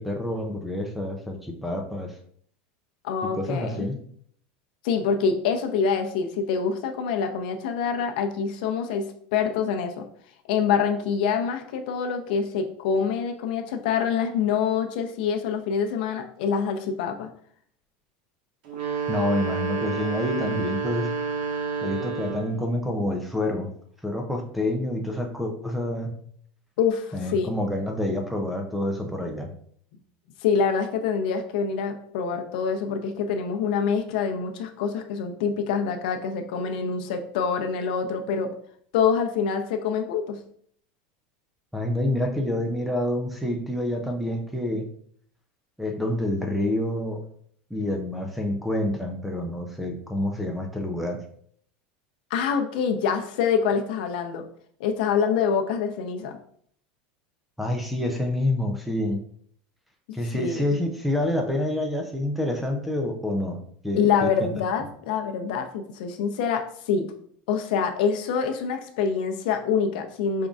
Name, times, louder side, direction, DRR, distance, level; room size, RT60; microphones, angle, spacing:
voice 1, 0.0-2.1 3.3-4.0 19.1-21.2 21.8-23.7 24.0-26.2 27.1-29.5 41.7-44.9 45.8-47.2 47.7-51.2 57.6-59.2 60.1-64.5, left 1 dB, ahead, 2 dB, 0.4 m, -28 dB
voice 2, 3.0-3.8 4.8-10.1 10.5-17.3 26.8-27.5 30.4-38.5 38.9-40.4 52.3-54.4 54.8-56.4 60.3-60.7 63.9-67.1 67.5-70.5, left 6 dB, 70° left, 5 dB, 0.6 m, -26 dB
sound 1, 18.6-22.7, right 5 dB, 60° right, 1.3 m, -29 dB
5.1 x 3.6 x 2.4 m, 0.62 s
supercardioid pair, 170°, 5 cm